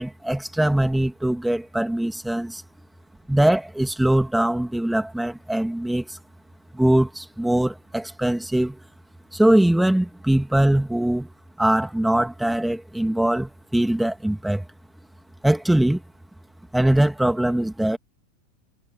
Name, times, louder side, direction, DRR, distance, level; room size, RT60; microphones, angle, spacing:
voice 1, 0.0-2.6 3.3-6.2 6.7-8.8 9.3-11.3 11.6-14.6 15.4-16.0 16.7-18.0, right 1 dB, 5° right, 2.8 m, -21 dB
hypercardioid pair, 105°, 0 cm